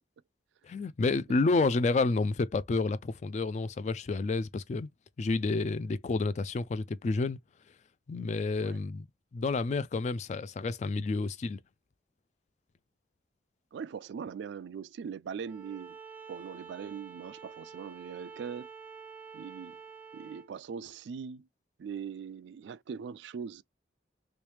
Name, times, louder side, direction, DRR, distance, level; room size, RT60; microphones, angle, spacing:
voice 1, 0.6-4.9 5.2-7.4 8.1-9.1 9.3-11.6, left 3 dB, 40° left, 0.3 m, -29 dB
voice 2, 13.7-16.0 16.3-18.7 19.3-19.8 20.1-21.5 21.8-23.6, right 6 dB, 70° right, 0.3 m, -41 dB
Bowed string instrument, 15.4-20.5, right 5 dB, 10° right, 0.6 m, -48 dB
3.2 x 3.0 x 3.2 m
head